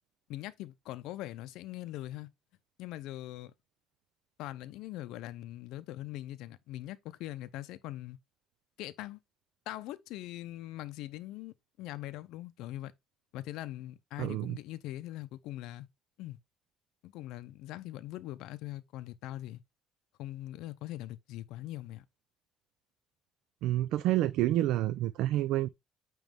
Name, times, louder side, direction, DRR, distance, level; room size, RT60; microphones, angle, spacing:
voice 1, 0.3-2.3 2.8-3.5 4.4-8.2 8.8-9.2 9.7-12.9 13.3-15.9 16.2-16.4 17.0-19.6 20.2-22.0, left 15 dB, 85° left, 0.6 m, -42 dB
voice 2, 14.2-14.6 23.6-25.7, right 14 dB, 75° right, 0.4 m, -28 dB
9.0 x 3.1 x 3.5 m
cardioid pair, 170°, 0 cm